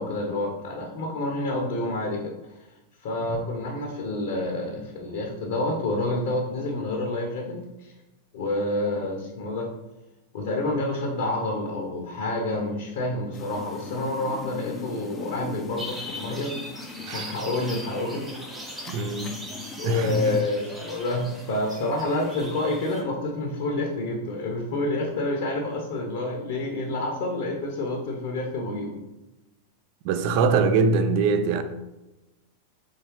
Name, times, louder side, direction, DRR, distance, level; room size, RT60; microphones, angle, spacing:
voice 1, 0.0-2.3 3.0-7.9 8.3-9.7 10.3-18.3 19.2-19.3 19.8-28.9, left 2 dB, 55° left, 0.7 m, -28 dB
sound 1, 13.3-20.4, left 5 dB, 20° left, 0.4 m, -40 dB
sound 2, 15.8-23.0, equal, 10° right, 1.0 m, -40 dB
voice 2, 18.9-19.3 19.8-20.2 30.0-31.6, right 4 dB, 45° right, 0.4 m, -23 dB
4.5 x 3.1 x 3.0 m
figure-of-eight pair, 90°, 0 cm